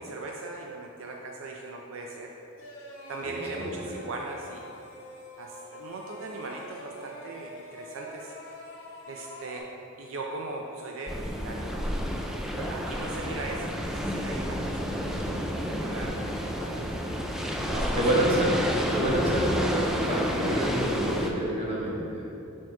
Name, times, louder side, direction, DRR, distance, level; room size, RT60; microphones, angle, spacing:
voice 1, 0.0-2.3 3.1-4.7 5.4-8.3 9.1-9.7 10.0-11.7 12.7-16.2 16.5-16.9 17.7-18.0, right 2 dB, 70° right, 0 dB, 0.5 m, -39 dB
sound 1, 2.6-9.6, left 1 dB, 75° left, 1.1 m, -45 dB
voice 2, 3.2-3.7 12.4-12.7 14.5-14.8 17.7-22.2, right 1 dB, 30° right, -5 dB, 1.2 m, -28 dB
sound 2, 11.1-21.3, equal, ahead, 0.3 m, -30 dB
4.5 x 4.2 x 5.7 m, 2.8 s
head